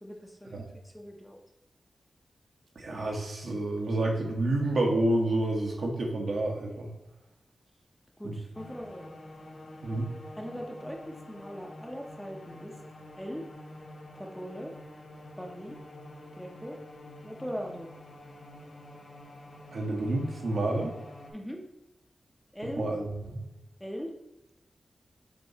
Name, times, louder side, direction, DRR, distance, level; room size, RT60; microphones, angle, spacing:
voice 1, 0.0-1.4 8.2-9.1 10.4-12.7 13.2-13.5 14.1-14.7 15.4-15.8 16.4-16.8 17.2-17.9 21.3-21.6 22.5-22.8 23.8-24.1, equal, ahead, 1 dB, 0.8 m, -40 dB
voice 2, 2.7-6.9 8.2-8.4 9.8-10.1 19.7-20.9 22.7-23.0 23.3-23.4, right 1 dB, 65° right, 0 dB, 1.4 m, -29 dB
sound 1, 8.5-21.3, left 1 dB, 50° left, 1.7 m, -48 dB
7.3 x 3.0 x 4.2 m, 0.95 s
wide cardioid pair, 150°, 0 cm